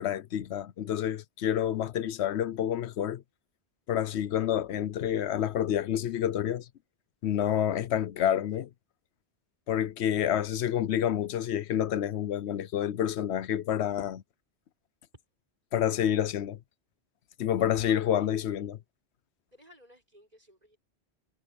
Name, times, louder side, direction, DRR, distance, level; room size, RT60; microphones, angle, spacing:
voice 1, 0.0-3.2 3.9-6.7 7.2-8.7 9.7-14.2 15.7-16.6 17.4-18.8, left 10 dB, 80° left, 0.9 m, -28 dB
voice 2, 17.7-18.7 19.5-20.8, right 1 dB, 40° right, 6.7 m, -56 dB
omnidirectional pair, 1.1 m